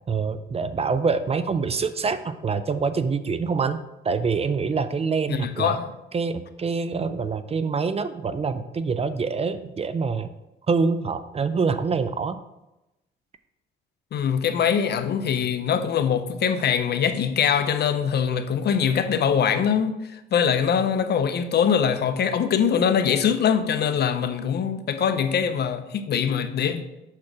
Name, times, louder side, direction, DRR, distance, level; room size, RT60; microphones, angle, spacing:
voice 1, 0.1-5.8 6.1-10.3 10.7-12.4, right 5 dB, 30° right, 0.4 m, -25 dB
voice 2, 5.3-5.9 14.1-26.9, left 7 dB, 55° left, 0.6 m, -23 dB
6.2 x 4.4 x 4.7 m
cardioid pair, 90°, 20 cm